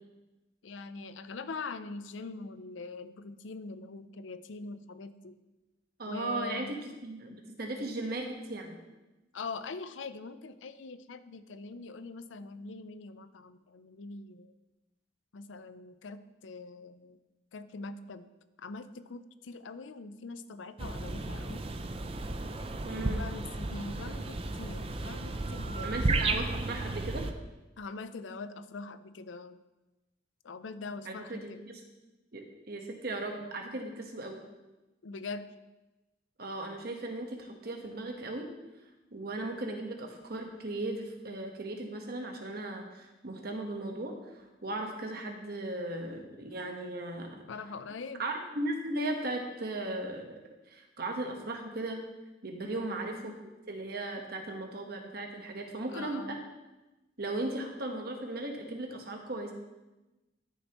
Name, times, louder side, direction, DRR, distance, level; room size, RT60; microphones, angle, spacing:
voice 1, 0.6-5.4 6.1-6.7 9.3-14.5 15.3-17.2 17.5-18.3 18.6-21.6 22.9-26.0 27.8-29.6 30.4-31.6 35.0-35.5 47.5-48.2 52.6-53.0 55.9-56.4, left 3 dB, 90° left, 12 dB, 0.5 m, -43 dB
voice 2, 6.0-8.8 22.8-23.2 25.8-27.3 31.0-31.5 32.3-34.4 36.4-38.5 39.1-47.4 48.2-50.4 50.7-52.0 52.4-53.3 53.7-56.4 57.2-59.5, right 2 dB, 55° right, 2 dB, 1.3 m, -37 dB
sound 1, 20.8-27.3, right 2 dB, 30° right, 0.5 m, -33 dB
13.0 x 6.8 x 3.0 m, 1.1 s
head